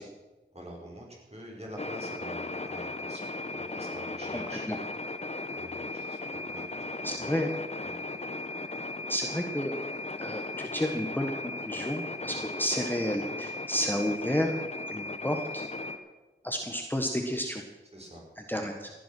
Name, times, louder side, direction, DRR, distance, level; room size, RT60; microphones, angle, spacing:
voice 1, 0.5-4.7 5.6-6.2 6.5-7.4 7.8-7.9 12.3-12.4 17.9-18.3 18.6-18.7, right 1 dB, 30° right, -2 dB, 5.2 m, -46 dB
sound 1, 1.8-16.0, left 2 dB, 35° left, 1.2 m, -37 dB
voice 2, 7.0-7.5 9.1-9.7 10.2-14.6 14.9-15.6 16.4-17.6 18.5-18.9, equal, 10° left, 3 dB, 1.4 m, -31 dB
15.5 x 10.5 x 6.2 m, 1.2 s
wide cardioid pair, 55°, 20 cm